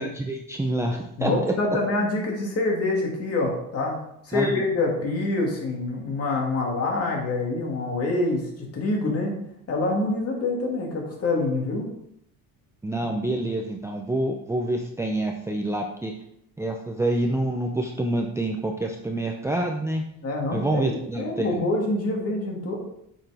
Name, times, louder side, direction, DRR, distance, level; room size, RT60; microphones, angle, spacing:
voice 1, 0.0-1.5 4.3-4.6 12.8-16.1 16.6-20.0 20.5-21.6, right 1 dB, 10° right, 1 dB, 0.5 m, -27 dB
voice 2, 1.2-4.0 4.2-9.4 9.7-11.9 20.2-22.8, left 2 dB, 45° left, 0 dB, 2.2 m, -26 dB
8.6 x 6.2 x 3.4 m, 0.74 s
cardioid pair, 150°, 35 cm